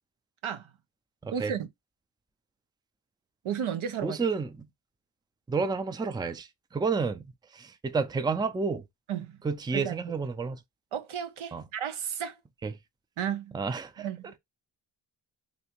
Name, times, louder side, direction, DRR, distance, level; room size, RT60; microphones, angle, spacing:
voice 1, 1.3-1.7 3.4-4.2 9.1-9.4 9.7-10.0 10.9-12.4 13.2-13.6 14.0-14.4, right 8 dB, 85° right, 0.7 m, -33 dB
voice 2, 4.0-4.7 5.5-8.8 9.4-10.6 11.5-11.6 12.6-12.7 13.5-14.1, right 4 dB, 10° right, 0.4 m, -30 dB
3.3 x 2.7 x 3.0 m
cardioid pair, 45°, 48 cm